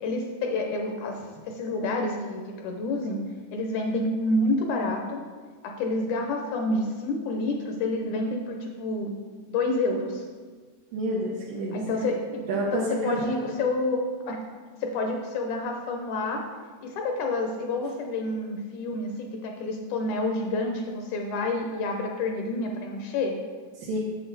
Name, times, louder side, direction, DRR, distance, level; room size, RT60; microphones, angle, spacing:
voice 1, 0.0-3.2 3.5-5.2 5.6-9.2 9.5-10.2 11.7-14.4 14.8-16.4 16.8-23.4, left 2 dB, 75° left, 3 dB, 1.9 m, -29 dB
voice 2, 10.9-11.8 12.5-13.6 23.8-24.0, right 1 dB, 80° right, -5 dB, 2.6 m, -29 dB
8.0 x 6.9 x 4.0 m, 1.5 s
omnidirectional pair, 3.9 m